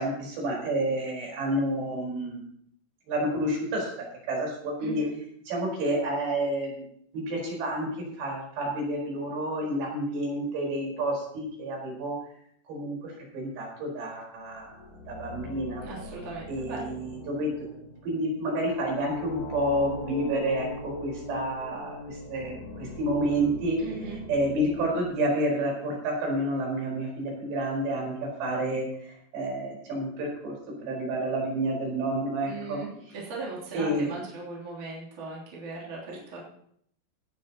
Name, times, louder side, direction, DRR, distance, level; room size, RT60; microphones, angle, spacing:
voice 1, 0.0-2.4 3.1-3.9 4.3-5.0 5.5-6.8 7.1-7.9 8.2-12.1 12.7-14.7 15.1-15.8 16.5-17.5 18.0-23.8 24.3-28.9 29.3-30.5 30.8-32.8 33.7-34.1 36.1-36.2, right 1 dB, 75° right, -1 dB, 6.8 m, -29 dB
sound 1, 14.4-25.7, left 2 dB, 55° left, 2.2 m, -40 dB
voice 2, 15.8-16.9 23.8-24.2 32.5-36.4, right 3 dB, 45° right, -5 dB, 4.4 m, -38 dB
17.0 x 13.0 x 3.0 m, 0.67 s
omnidirectional pair, 4.9 m